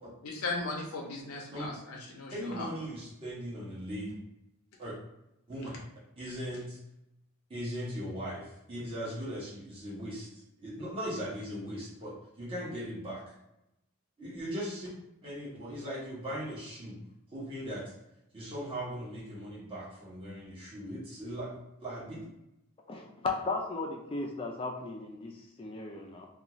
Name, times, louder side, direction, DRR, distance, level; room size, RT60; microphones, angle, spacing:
voice 1, 0.2-2.7, left 3 dB, 80° left, -1 dB, 0.5 m, -37 dB
voice 2, 2.3-4.1 4.8-4.9 5.5-5.7 6.2-6.8 7.5-10.3 10.6-13.2 14.2-14.9 15.2-17.1 17.3-17.9 18.3-21.5 21.8-22.2, equal, 25° right, -8 dB, 0.9 m, -39 dB
voice 3, 22.9-26.3, left 3 dB, 25° left, 2 dB, 0.3 m, -36 dB
2.5 x 2.3 x 2.9 m, 0.87 s
head